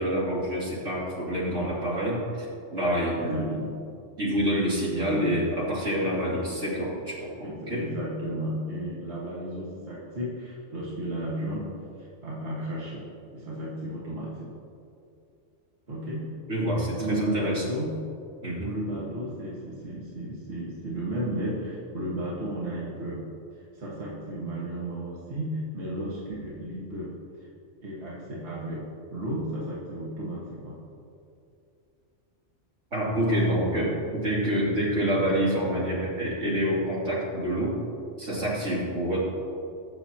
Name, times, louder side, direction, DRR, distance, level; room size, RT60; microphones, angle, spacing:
voice 1, 0.0-3.6 4.2-7.8 16.5-17.6 18.4-18.8 32.9-37.8 38.2-39.2, equal, 85° right, -7 dB, 3.2 m, -27 dB
voice 2, 3.2-3.9 5.0-5.5 7.4-11.7 12.0-14.5 15.9-16.4 16.8-18.1 18.6-23.3 23.6-27.2 27.8-30.8 33.4-34.0, right 1 dB, 60° right, -6 dB, 1.9 m, -34 dB
21.0 x 7.0 x 2.9 m, 2.6 s
omnidirectional pair, 1.3 m